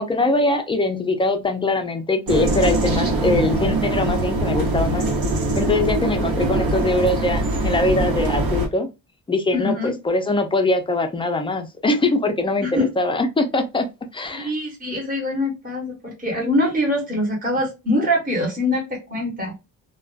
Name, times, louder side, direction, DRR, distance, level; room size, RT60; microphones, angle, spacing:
voice 1, 0.0-5.0 5.6-8.9 9.3-13.9 14.1-14.5, left 2 dB, 15° left, 0.3 m, -22 dB
sound 1, 2.3-8.7, right 2 dB, 75° right, 1.0 m, -22 dB
voice 2, 9.5-9.9 12.6-12.9 14.3-19.5, left 1 dB, 25° right, 1.0 m, -23 dB
2.4 x 2.2 x 2.3 m
cardioid pair, 125°, 35 cm